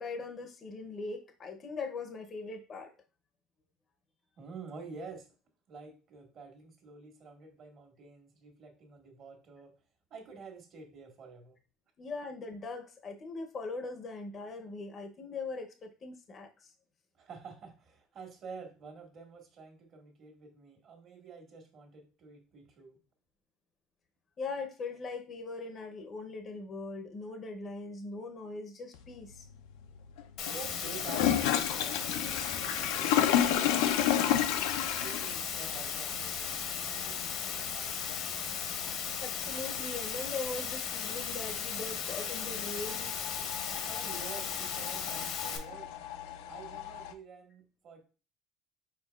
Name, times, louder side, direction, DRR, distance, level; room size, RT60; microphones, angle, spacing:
voice 1, 0.0-2.9 12.0-16.7 24.4-29.5 39.2-43.1, left 3 dB, 35° left, 5 dB, 0.6 m, -40 dB
voice 2, 4.4-5.3 5.7-9.8 10.1-11.6 17.1-23.0 30.5-33.5 34.1-34.6 34.9-38.0 38.4-38.7 43.9-45.9 46.4-48.1, right 4 dB, 50° right, 3 dB, 1.4 m, -49 dB
sound 1, 28.9-47.1, left 10 dB, 85° left, 0.4 m, -33 dB
Water, 30.4-45.6, left 7 dB, 70° left, 0.9 m, -36 dB
4.8 x 4.5 x 2.3 m, 0.35 s
supercardioid pair, 110°, 0 cm